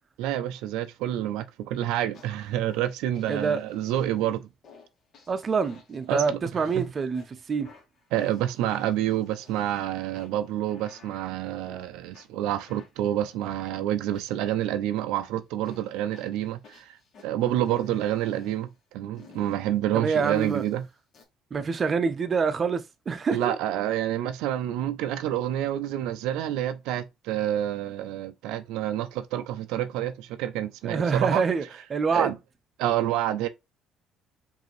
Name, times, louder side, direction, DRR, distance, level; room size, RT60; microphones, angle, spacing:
voice 1, 0.2-4.4 6.1-6.4 6.7-6.9 8.1-17.0 17.2-18.7 18.9-20.8 23.3-31.5 32.1-32.4 32.8-33.5, right 12 dB, 85° right, 0.4 m, -28 dB
sound 1, 2.1-2.8 3.1-4.3 4.6-4.9 5.1-6.1 6.6-7.3 7.6-9.8 10.1-11.8 12.1-14.8 15.1-15.3 15.6-17.3 17.6-18.6 19.1-19.6 20.1-21.2, left 5 dB, 55° left, 1.5 m, -53 dB
voice 2, 3.3-3.6 5.3-7.7 19.9-20.6 21.5-23.6 30.8-31.6 31.9-32.3, right 5 dB, 35° right, 0.6 m, -26 dB
5.0 x 2.7 x 3.1 m
cardioid pair, 95°, 0 cm